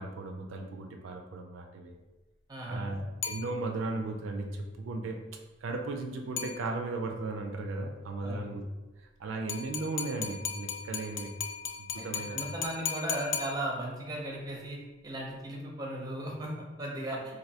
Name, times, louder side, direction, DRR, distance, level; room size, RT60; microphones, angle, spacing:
voice 1, 0.0-2.0 2.7-5.2 5.6-8.6 9.0-11.4 11.8-12.4, right 2 dB, 75° right, 3 dB, 0.4 m, -36 dB
voice 2, 2.5-2.9 8.2-8.5 12.0-14.8 15.0-17.2, right 1 dB, 20° right, -1 dB, 0.5 m, -36 dB
sound 1, 3.2-4.1 6.4-7.1 9.5-14.1, left 7 dB, 65° left, 0.3 m, -38 dB
3.2 x 2.6 x 2.7 m, 1.1 s
head